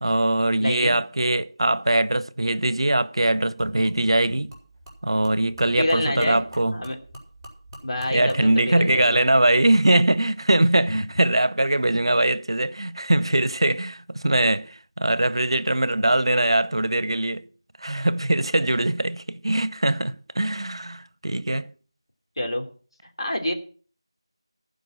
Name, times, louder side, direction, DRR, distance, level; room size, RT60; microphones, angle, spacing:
voice 1, 0.0-4.5 5.0-6.8 8.1-17.5 17.8-21.7, right 1 dB, 70° right, 0.7 m, -22 dB
voice 2, 0.6-0.9 5.8-7.0 7.8-9.2 22.4-22.7 23.2-23.5, left 1 dB, 75° left, 3.0 m, -27 dB
Gurgling / Liquid, 3.6-10.4, equal, 5° right, 3.8 m, -45 dB
15.0 x 5.3 x 7.8 m
figure-of-eight pair, 170°, 3 cm